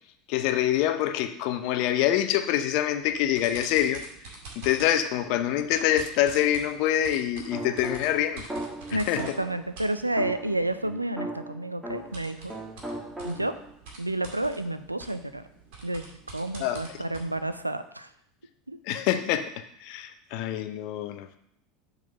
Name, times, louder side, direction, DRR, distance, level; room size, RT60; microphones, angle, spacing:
voice 1, 0.3-4.0 4.6-8.5 8.9-9.2 16.6-16.8 18.9-19.5 19.8-21.4, left 11 dB, 55° left, 9 dB, 0.7 m, -25 dB
sound 1, 3.0-10.9 11.8-17.7, right 3 dB, 55° right, 2.2 m, -47 dB
sound 2, 7.5-9.7 10.2-12.2 12.5-13.7, right 1 dB, 15° right, 1.7 m, -37 dB
voice 2, 8.9-12.5 13.2-13.6 14.0-15.4 15.8-16.1 16.3-18.1 18.7-18.8, right 1 dB, 90° right, 11 dB, 0.4 m, -30 dB
7.5 x 3.9 x 5.5 m, 0.74 s
figure-of-eight pair, 75°, 0 cm